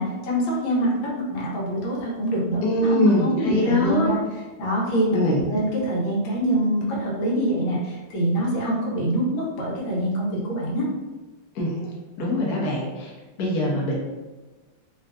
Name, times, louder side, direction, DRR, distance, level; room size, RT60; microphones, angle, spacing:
voice 1, 0.0-4.2 4.6-10.9, right 1 dB, 80° left, -4 dB, 1.6 m, -25 dB
voice 2, 2.6-4.1 5.1-5.4 11.6-11.8 12.2-13.1 13.4-14.0, left 1 dB, 60° left, -4 dB, 1.1 m, -22 dB
3.7 x 2.3 x 2.4 m, 1.2 s
omnidirectional pair, 2.2 m